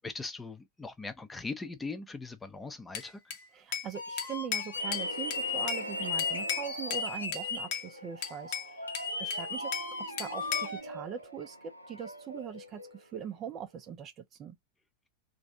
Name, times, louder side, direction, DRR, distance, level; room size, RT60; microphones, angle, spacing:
voice 1, 0.0-3.3, left 3 dB, 10° left, 0.7 m, -40 dB
Bell / Glass, 2.9-3.9 4.2-5.9 6.2-7.1 7.3-7.9 8.2-9.9 10.2-10.8, left 8 dB, 45° left, 0.9 m, -36 dB
voice 2, 3.5-9.7 10.0-14.6, right 8 dB, 30° right, 0.5 m, -41 dB
sound 1, 3.9-7.7 8.9-10.8, left 4 dB, 80° left, 0.8 m, -36 dB
sound 2, 4.7-13.5, right 1 dB, 90° right, 0.5 m, -43 dB
3.1 x 2.6 x 3.6 m
figure-of-eight pair, 90°, 0 cm